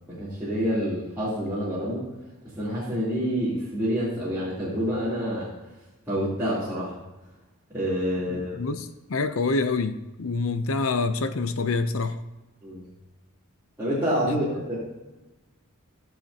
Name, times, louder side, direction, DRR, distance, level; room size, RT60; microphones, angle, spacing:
voice 1, 0.1-2.1 2.6-5.5 6.0-6.9 7.7-8.6 12.6-12.8 13.8-14.8, equal, 10° right, -13 dB, 3.3 m, -27 dB
voice 2, 8.3-12.2 14.3-14.4, left 3 dB, 70° left, 9 dB, 0.6 m, -27 dB
16.5 x 7.5 x 2.9 m, 1.1 s
head